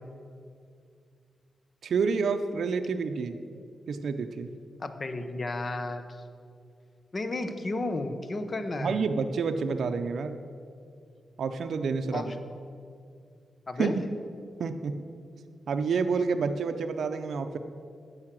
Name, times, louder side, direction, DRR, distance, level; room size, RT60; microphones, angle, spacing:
voice 1, 1.8-3.4 3.9-4.5 8.8-10.4 11.4-12.3 13.8-14.0 14.6-15.0 15.7-17.6, right 5 dB, 75° right, 7 dB, 0.5 m, -29 dB
voice 2, 4.8-6.0 7.1-9.0 12.1-12.3 13.7-13.9, left 2 dB, 40° left, 8 dB, 0.9 m, -32 dB
9.6 x 6.4 x 7.5 m, 2.3 s
cardioid pair, 80°, 0 cm